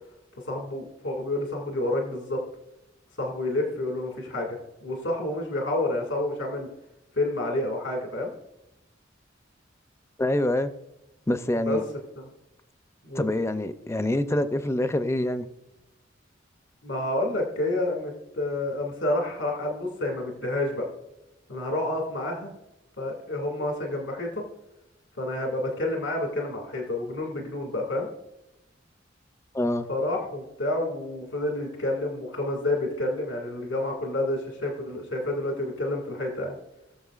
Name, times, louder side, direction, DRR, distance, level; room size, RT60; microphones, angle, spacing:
voice 1, 0.5-2.4 3.2-6.7 7.1-8.3 11.7-11.8 12.2-12.3 13.0-13.3 16.8-20.9 21.5-22.5 23.0-24.4 25.2-28.1 29.9-36.6, left 1 dB, 85° left, 0 dB, 2.1 m, -29 dB
voice 2, 10.2-10.7 11.3-11.8 13.1-15.5 29.5-29.9, left 1 dB, 15° left, 10 dB, 0.5 m, -25 dB
20.0 x 7.1 x 2.4 m, 0.89 s
head